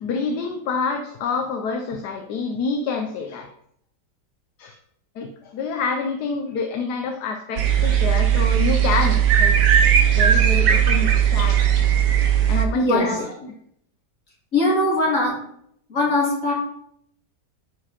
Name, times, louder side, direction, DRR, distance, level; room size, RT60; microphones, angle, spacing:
voice 1, 0.0-3.5 4.6-4.8 5.2-9.9 10.2-11.6 12.5-13.1 13.4-13.5, left 4 dB, 70° left, 4 dB, 1.3 m, -27 dB
sound 1, 7.6-12.6, right 9 dB, 85° right, 1.6 m, -17 dB
voice 2, 12.7-13.2 14.5-15.3 15.9-16.5, left 2 dB, 50° left, -3 dB, 3.1 m, -21 dB
10.0 x 5.0 x 4.2 m, 0.69 s
omnidirectional pair, 1.8 m